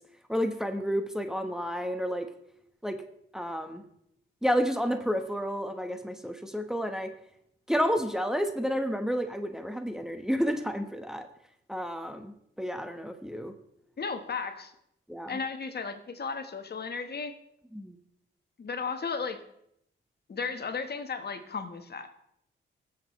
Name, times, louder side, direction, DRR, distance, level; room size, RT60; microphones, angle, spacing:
voice 1, 0.3-2.3 2.8-3.0 3.3-3.8 4.4-7.1 7.7-11.3 11.7-13.5 15.1-15.4 17.7-18.0, equal, ahead, 6 dB, 1.2 m, -30 dB
voice 2, 14.0-14.7 15.3-17.3 18.6-19.4 20.3-22.1, left 5 dB, 50° left, 8 dB, 1.2 m, -34 dB
19.0 x 7.5 x 3.2 m, 0.75 s
cardioid pair, 60°, 21 cm